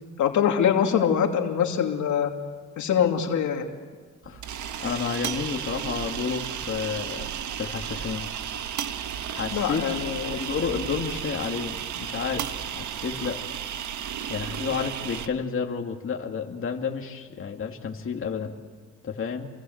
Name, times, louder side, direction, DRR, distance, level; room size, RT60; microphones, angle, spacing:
voice 1, 0.2-2.3 2.8-3.7 9.5-10.4, left 8 dB, 75° left, 3 dB, 2.7 m, -23 dB
sound 1, 4.2-15.3, right 9 dB, 75° right, 1.7 m, -33 dB
voice 2, 4.8-7.3 7.6-8.3 9.3-10.1 10.3-12.5 12.7-13.4 14.3-18.5 19.0-19.5, left 6 dB, 45° left, 2 dB, 2.5 m, -31 dB
29.5 x 24.5 x 8.0 m, 1.5 s
cardioid pair, 90°, 30 cm